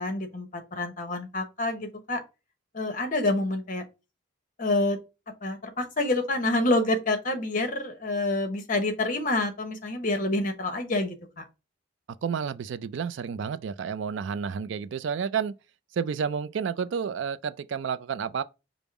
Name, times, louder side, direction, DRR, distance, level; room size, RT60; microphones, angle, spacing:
voice 1, 0.0-2.2 2.7-3.8 4.6-5.0 5.4-11.4, left 2 dB, 40° left, 0.9 m, -27 dB
voice 2, 12.2-15.5 15.9-18.4, right 6 dB, 65° right, 0.3 m, -30 dB
5.3 x 2.0 x 4.5 m
head